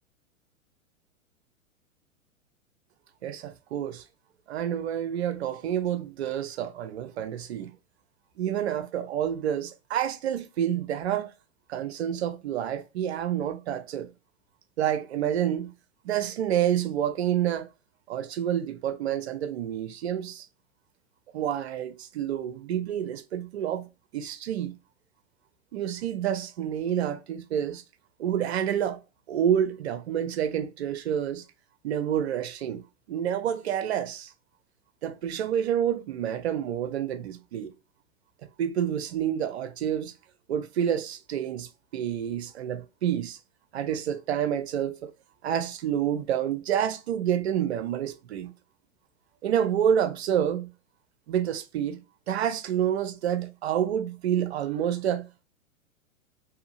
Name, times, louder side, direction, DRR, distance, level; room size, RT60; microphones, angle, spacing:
voice 1, 3.2-4.0 4.5-7.7 8.4-11.3 11.7-14.1 14.8-15.7 16.0-17.7 18.1-20.5 21.3-23.9 24.1-24.8 25.7-27.8 28.2-29.0 29.3-31.4 31.8-32.8 33.1-34.3 35.0-37.7 38.6-40.1 40.5-43.4 43.7-45.1 45.4-48.5 49.4-50.7 51.3-52.0 52.3-55.3, right 9 dB, 55° right, 0.6 m, -28 dB
3.6 x 2.8 x 2.6 m
figure-of-eight pair, 100°, 40 cm